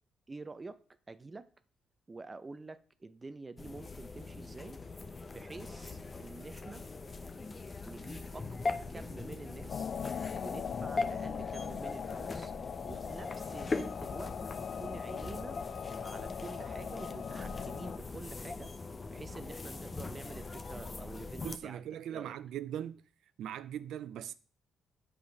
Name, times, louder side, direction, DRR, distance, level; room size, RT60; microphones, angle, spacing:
voice 1, 0.3-0.8 1.1-1.5 2.1-4.8 5.3-6.9 7.8-9.9 10.4-15.6 16.0-18.7 19.1-22.3, right 3 dB, 25° right, 0.6 m, -48 dB
sound 1, 3.6-21.6, left 3 dB, 30° left, 0.7 m, -41 dB
sound 2, 9.7-18.0, left 7 dB, 55° left, 0.3 m, -40 dB
voice 2, 21.4-23.0 23.4-24.3, right 10 dB, 80° right, 0.4 m, -40 dB
7.2 x 5.0 x 6.1 m
cardioid pair, 90°, 0 cm